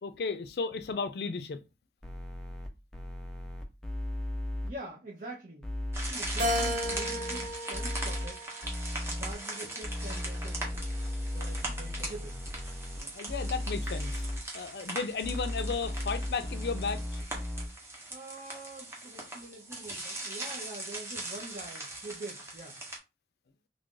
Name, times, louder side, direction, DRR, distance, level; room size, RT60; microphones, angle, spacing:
voice 1, 0.0-1.6 13.0-14.3 14.5-17.2, left 4 dB, 65° left, 0.4 m, -34 dB
sound 1, 2.0-4.7 5.6-8.3 8.6-9.3 9.8-13.0 13.3-14.4 15.2-17.7, left 1 dB, 5° left, 0.5 m, -36 dB
voice 2, 4.6-5.7 6.0-8.4 9.1-10.6 11.3-12.4 18.1-22.8, right 2 dB, 45° right, 0.7 m, -45 dB
sound 2, 5.9-23.0, right 2 dB, 15° right, 1.0 m, -40 dB
Keyboard (musical), 6.4-8.9 9.5-10.7, equal, 80° right, 1.1 m, -35 dB
3.2 x 2.5 x 3.7 m
head